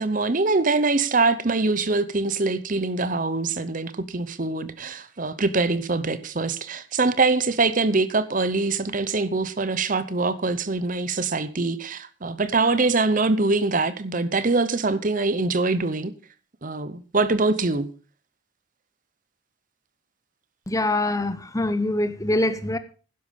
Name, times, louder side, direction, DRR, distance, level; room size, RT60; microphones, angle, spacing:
voice 1, 0.0-16.1 16.6-17.9, right 3 dB, 40° right, 0.8 m, -23 dB
voice 2, 20.7-22.8, left 2 dB, 15° left, 0.8 m, -24 dB
12.0 x 10.5 x 5.2 m
head